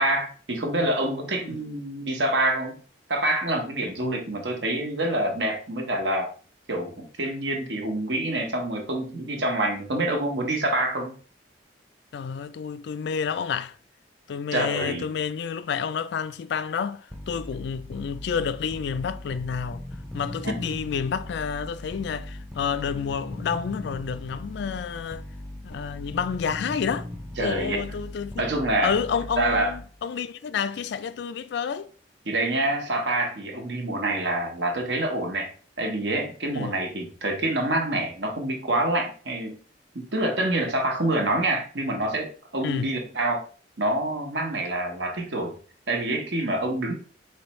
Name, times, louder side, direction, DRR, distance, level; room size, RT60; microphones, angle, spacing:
voice 1, 0.0-2.8 3.1-6.3 6.7-11.2 14.5-15.1 20.4-20.5 27.4-27.8 28.4-28.9 29.4-29.7 32.2-35.5 35.8-39.6 39.9-43.4 43.8-45.6 45.9-47.0, right 1 dB, 65° right, 1.1 m, -26 dB
voice 2, 12.1-13.8 14.3-19.8 20.1-25.2 25.6-27.1 27.4-28.4 28.8-31.9 36.5-36.8 42.6-43.0, left 6 dB, 65° left, 0.3 m, -29 dB
sound 1, 17.1-30.0, left 1 dB, ahead, 0.6 m, -39 dB
4.6 x 3.3 x 3.1 m
head